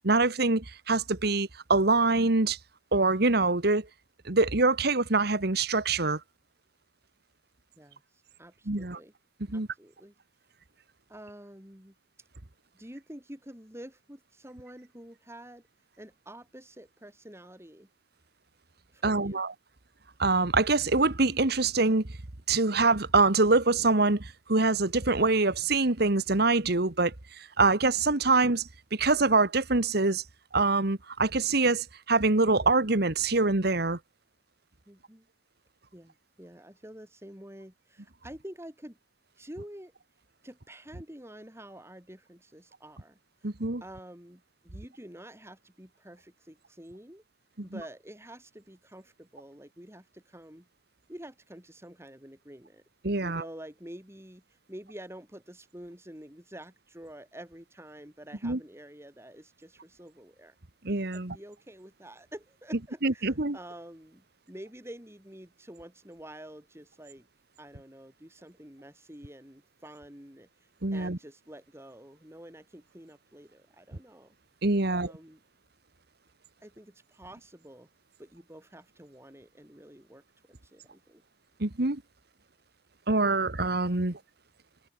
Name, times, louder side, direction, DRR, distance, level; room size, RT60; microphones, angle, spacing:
voice 1, 0.0-2.6 2.9-3.9 4.3-6.2 8.7-9.0 9.5-9.7 19.0-19.5 20.2-22.0 22.5-30.2 30.5-34.0 43.4-43.8 53.0-53.4 58.4-58.6 60.9-61.4 63.0-63.6 70.8-71.2 74.6-75.1 81.6-82.0 83.1-84.2, right 3 dB, 60° right, 1.7 m, -25 dB
voice 2, 8.4-9.1 9.5-10.1 11.1-12.0 12.7-15.6 16.0-17.9 18.9-19.4 34.9-35.3 35.9-39.0 39.4-39.9 40.4-43.5 43.8-47.2 47.6-50.7 51.1-52.8 53.2-54.4 54.7-60.6 61.1-67.3 67.6-70.5 70.9-74.3 74.8-75.4 76.6-77.9 78.2-81.2, right 1 dB, 15° right, 8.0 m, -48 dB
head